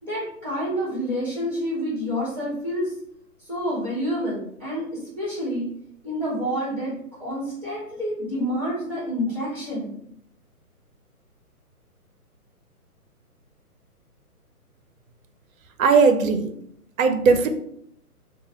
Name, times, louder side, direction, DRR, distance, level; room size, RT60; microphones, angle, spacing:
voice 1, 0.0-2.9 3.4-5.7 6.0-10.0, equal, 5° left, -8 dB, 1.3 m, -28 dB
voice 2, 15.8-16.5 17.0-17.5, right 5 dB, 65° right, 6 dB, 0.6 m, -18 dB
3.0 x 2.2 x 2.8 m, 0.72 s
figure-of-eight pair, 140°, 46 cm